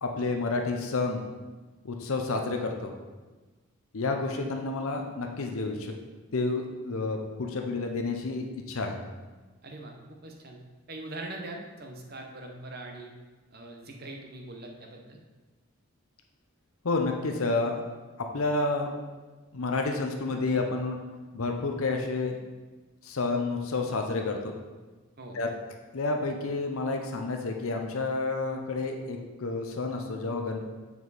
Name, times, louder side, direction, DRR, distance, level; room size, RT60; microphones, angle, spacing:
voice 1, 0.0-1.2 1.8-2.9 3.9-6.0 6.3-9.0 16.8-17.8 18.2-18.9 19.5-21.0 21.3-22.4 23.0-24.5 25.3-25.5 25.9-30.6, left 3 dB, 70° left, 3 dB, 0.7 m, -30 dB
voice 2, 9.6-9.9 10.2-10.6 10.9-13.1 13.5-15.2 25.2-25.4, right 2 dB, 45° right, 2 dB, 0.9 m, -42 dB
7.1 x 4.7 x 4.1 m, 1.3 s
head